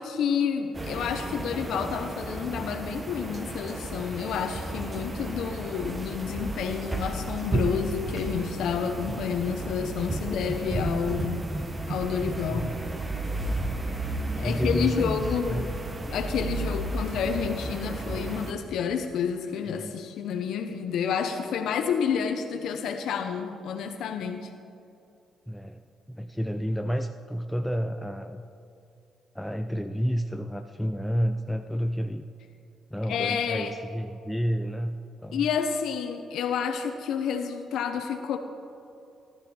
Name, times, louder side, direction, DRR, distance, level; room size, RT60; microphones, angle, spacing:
voice 1, 0.0-11.5 11.9-12.7 14.3-15.7 16.1-24.5 33.1-33.7 35.3-38.4, left 7 dB, 75° left, 6 dB, 0.8 m, -29 dB
sound 1, 0.7-18.5, right 2 dB, 25° right, 1.2 m, -33 dB
voice 2, 14.4-15.8 19.7-20.0 25.5-25.8 26.1-28.4 29.3-32.3 32.9-35.5, equal, 5° left, 6 dB, 0.5 m, -30 dB
17.5 x 12.0 x 4.4 m, 2.6 s
cardioid pair, 90°, 0 cm